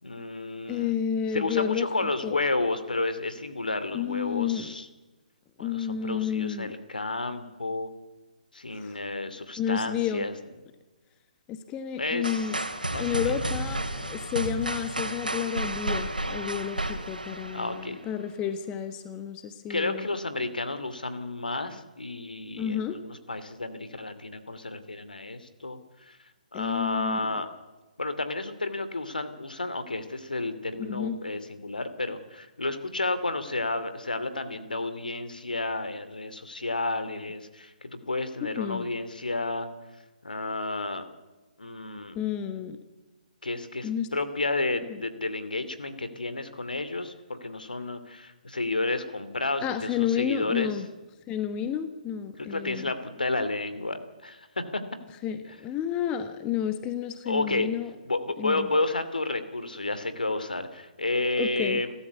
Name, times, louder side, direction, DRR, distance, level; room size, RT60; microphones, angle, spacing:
voice 1, 0.0-1.0 1.3-4.9 5.6-7.9 8.5-10.3 12.0-12.5 12.9-13.5 17.5-18.0 19.7-26.2 26.5-27.5 28.0-39.7 40.2-41.1 41.6-42.2 43.4-50.8 52.4-54.8 57.2-57.7 58.0-61.9, left 2 dB, 80° left, 11 dB, 2.6 m, -31 dB
voice 2, 0.7-1.9 2.2-2.4 3.9-4.7 5.6-6.7 8.7-9.0 9.6-10.3 11.5-12.6 12.9-20.1 22.6-23.0 26.5-27.2 30.8-31.2 38.6-38.9 42.1-42.8 43.8-44.1 49.6-50.9 51.3-52.9 55.2-57.9 58.4-58.7 61.4-61.8, left 9 dB, 20° left, 10 dB, 1.2 m, -31 dB
sound 1, 12.2-18.1, right 1 dB, 90° right, 2.8 m, -32 dB
30.0 x 13.0 x 8.4 m, 1.2 s
figure-of-eight pair, 135°, 5 cm